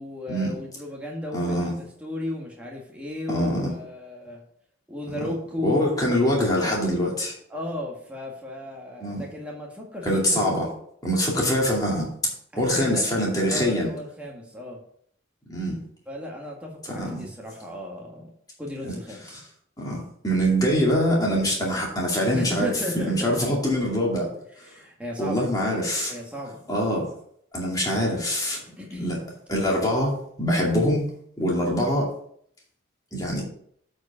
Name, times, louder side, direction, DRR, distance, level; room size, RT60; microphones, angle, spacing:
voice 1, 0.0-4.4 4.9-5.9 7.5-10.4 12.5-14.8 16.1-18.3 18.6-19.4 22.3-23.2 24.7-25.4 26.1-26.6 28.8-29.1, left 1 dB, 5° right, -2 dB, 1.7 m, -35 dB
voice 2, 1.3-1.7 3.3-3.7 5.6-7.3 9.0-9.2 10.0-10.7 11.0-12.1 12.6-13.9 15.5-15.8 16.9-17.3 18.8-18.9 19.8-24.3 25.2-26.1 26.7-27.1 27.5-28.6 29.0-29.2 29.5-31.1 31.4-32.1 33.1-33.4, equal, 20° left, -3 dB, 2.3 m, -24 dB
8.0 x 4.8 x 5.5 m, 0.65 s
head